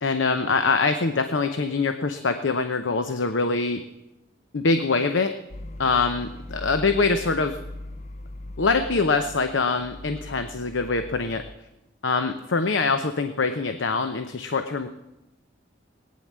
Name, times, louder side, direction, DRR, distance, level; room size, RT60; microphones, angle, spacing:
voice 1, 0.0-3.8 4.5-5.3 5.8-7.6 8.6-11.4 12.0-14.9, left 4 dB, 80° left, 8 dB, 0.8 m, -24 dB
sound 1, 5.5-11.6, left 1 dB, 35° left, 0.6 m, -40 dB
18.5 x 9.7 x 7.5 m, 0.96 s
head